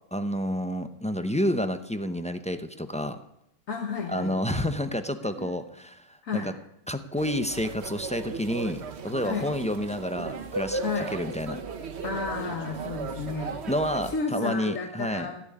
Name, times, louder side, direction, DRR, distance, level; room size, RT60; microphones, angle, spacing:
voice 1, 0.1-3.2 4.1-6.5 6.9-11.6 13.7-15.3, equal, 10° left, 8 dB, 0.4 m, -29 dB
voice 2, 3.7-4.4 5.4-5.5 6.2-6.5 9.2-9.5 10.8-11.1 12.0-13.6 14.0-15.4, left 5 dB, 65° left, 2 dB, 1.6 m, -32 dB
sound 1, 7.2-14.2, right 4 dB, 50° right, 1.3 m, -36 dB
15.0 x 6.8 x 9.9 m, 0.80 s
omnidirectional pair, 1.5 m